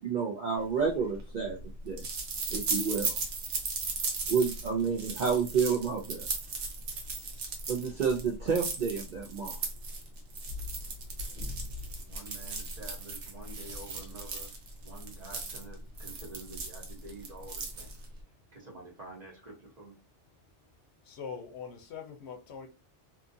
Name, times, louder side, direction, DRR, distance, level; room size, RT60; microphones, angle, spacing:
voice 1, 0.0-1.6 1.8-2.1 2.5-3.1 4.3-6.3 7.7-9.6, right 5 dB, 55° right, 0.6 m, -30 dB
sound 1, 0.8-18.2, right 3 dB, 70° right, 1.0 m, -37 dB
voice 2, 12.1-14.5 14.8-18.0 18.5-20.0, right 2 dB, 40° right, 1.0 m, -48 dB
voice 3, 21.1-22.7, left 6 dB, 70° left, 0.9 m, -42 dB
2.7 x 2.4 x 2.6 m
omnidirectional pair, 1.2 m